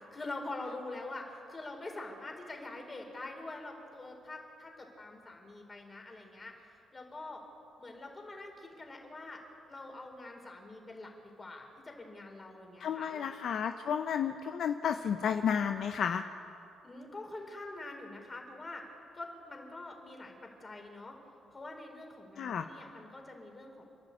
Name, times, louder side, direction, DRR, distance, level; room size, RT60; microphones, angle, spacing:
voice 1, 0.0-6.5 6.9-7.4 7.8-9.4 9.7-11.1 11.4-13.3 16.8-18.8 19.1-21.2 21.5-23.8, left 2 dB, 25° left, 2 dB, 4.6 m, -45 dB
voice 2, 12.8-16.2 22.4-22.7, left 7 dB, 65° left, 7 dB, 0.8 m, -32 dB
29.5 x 11.0 x 8.6 m, 2.7 s
cardioid pair, 90°, 0 cm